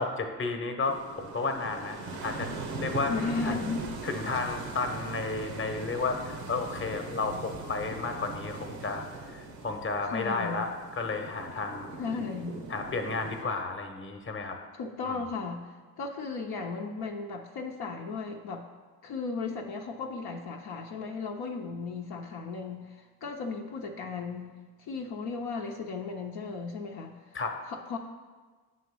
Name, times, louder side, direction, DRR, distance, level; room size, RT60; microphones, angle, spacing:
voice 1, 0.0-2.5 2.8-3.6 4.0-9.1 9.3-11.9 12.7-14.6 15.0-15.2 27.3-27.6, left 3 dB, 30° left, 5 dB, 0.9 m, -32 dB
beachbreak cobblestones, 0.8-13.4, right 3 dB, 90° right, 0.8 m, -40 dB
voice 2, 3.1-3.9 10.1-10.7 12.0-12.6 14.8-18.6 19.0-24.5 24.8-27.4 27.7-28.0, left 4 dB, 65° left, 1 dB, 0.7 m, -35 dB
7.5 x 3.1 x 6.0 m, 1.4 s
hypercardioid pair, 55°, 41 cm